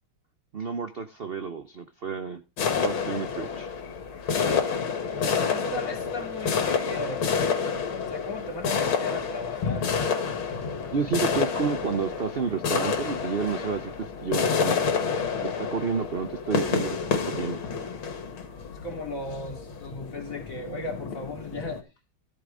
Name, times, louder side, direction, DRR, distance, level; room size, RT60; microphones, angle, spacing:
voice 1, 0.5-2.4 2.8-3.7 10.9-14.9 15.4-17.6, right 6 dB, 65° right, 9 dB, 0.5 m, -30 dB
sound 1, 2.6-21.8, left 6 dB, 80° left, 2.5 m, -29 dB
voice 2, 5.2-7.6 8.0-9.9 18.8-21.8, left 2 dB, 40° left, 1 dB, 2.9 m, -36 dB
13.0 x 8.3 x 3.8 m, 0.30 s
omnidirectional pair, 2.2 m